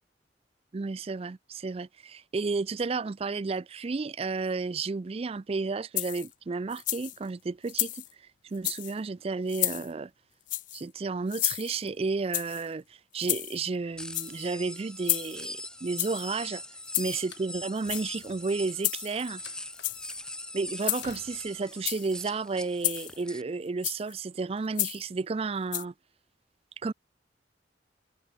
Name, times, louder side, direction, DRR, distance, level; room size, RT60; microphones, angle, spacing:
voice 1, 0.7-8.0 8.4-10.1 10.7-16.6 17.0-19.4 20.5-25.9 26.8-26.9, right 4 dB, 30° right, 0.4 m, -32 dB
sound 1, 6.0-6.3 6.7-7.2 7.7-8.1 8.5-8.9 9.5-9.9 10.5-10.8 11.3-11.9 12.3-12.7 13.2-13.7 14.0-14.5 15.1-15.5 16.0-16.3 16.9-17.2 17.8-18.3 18.8-19.3 19.7-20.2 20.8-21.2 21.7-22.1 22.8-23.2 23.8-24.1 24.8-25.1 25.7-25.8, left 17 dB, 45° left, 0.4 m, -31 dB
sound 2, 14.0-23.4, left 1 dB, 5° left, 1.0 m, -42 dB
Slam, 17.2-18.5 19.4-20.3 21.0-21.6, left 6 dB, 70° left, 6.0 m, -51 dB
head